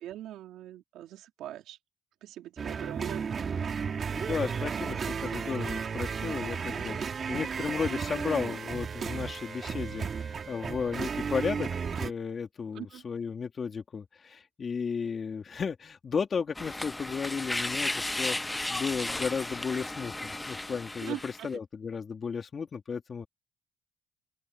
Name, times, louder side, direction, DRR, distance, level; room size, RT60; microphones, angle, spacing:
voice 1, 0.0-1.8 2.2-3.2 12.7-13.1 21.0-21.5, right 12 dB, 85° right, 2.7 m, -41 dB
sound 1, 2.6-12.1, right 6 dB, 45° right, 3.1 m, -34 dB
voice 2, 4.1-23.3, left 6 dB, 45° left, 3.3 m, -34 dB
sound 2, 16.6-21.5, left 2 dB, 15° left, 0.5 m, -34 dB
open air
cardioid pair, 90°, 0 cm